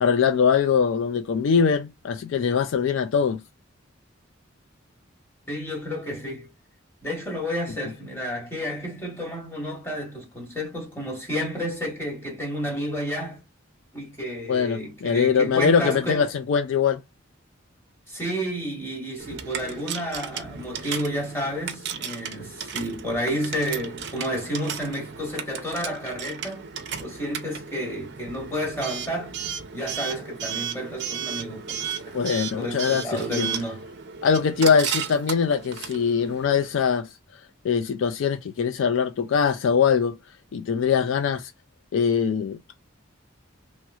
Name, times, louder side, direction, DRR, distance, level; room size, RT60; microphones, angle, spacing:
voice 1, 0.0-3.4 14.5-17.0 32.1-33.5 34.2-37.1 37.6-40.2 40.5-41.4 41.9-42.8, left 6 dB, 70° left, 0.3 m, -22 dB
voice 2, 5.5-6.5 7.0-13.4 13.9-16.3 18.1-26.6 27.0-29.3 29.7-32.2 32.6-33.8, equal, 10° left, 1.4 m, -31 dB
Coin (dropping) / Alarm, 19.2-36.7, right 7 dB, 60° right, 0.6 m, -35 dB
3.1 x 3.0 x 2.3 m
head